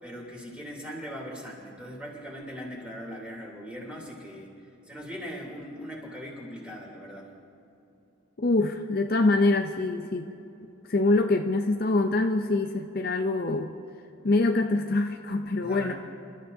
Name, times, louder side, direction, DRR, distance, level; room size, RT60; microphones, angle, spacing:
voice 1, 0.0-4.5 4.9-7.3 15.6-15.9, equal, 5° right, -3 dB, 3.1 m, -40 dB
voice 2, 8.4-10.3 10.9-13.7 14.2-15.9, left 2 dB, 45° left, 5 dB, 0.5 m, -24 dB
28.0 x 13.5 x 2.7 m, 2.8 s
head